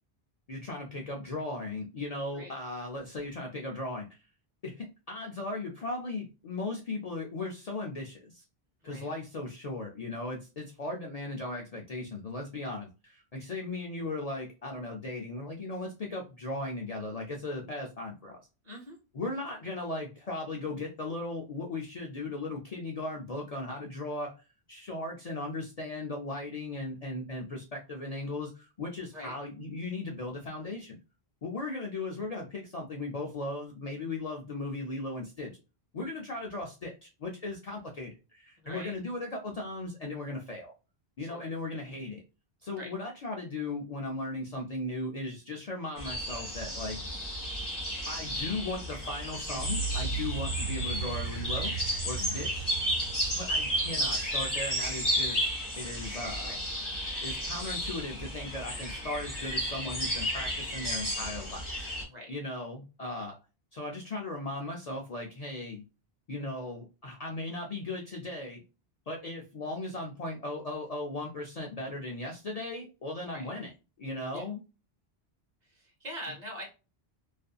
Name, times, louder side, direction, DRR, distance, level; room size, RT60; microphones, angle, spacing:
voice 1, 0.5-4.2 4.6-8.4 8.8-18.4 19.1-24.4 24.7-31.0 31.4-35.5 35.9-40.7 41.2-42.2 42.6-47.0 48.1-52.7 53.3-55.5 55.8-56.5 57.2-61.6 62.3-63.4 63.7-65.8 66.3-68.6 69.1-73.7 74.0-74.6, left 2 dB, 50° left, 0 dB, 0.5 m, -37 dB
voice 2, 18.6-19.0 29.1-29.3 38.6-38.9 41.2-41.5 42.7-42.9 52.1-52.5 56.3-56.6 62.0-62.3 73.3-73.5 74.3-74.5 75.6-76.6, equal, 45° right, 0 dB, 1.0 m, -43 dB
sound 1, 46.0-62.0, equal, 25° left, 1.1 m, -33 dB
sound 2, 49.5-55.6, right 6 dB, 85° right, 1.0 m, -37 dB
2.5 x 2.5 x 2.3 m, 0.30 s
omnidirectional pair, 1.0 m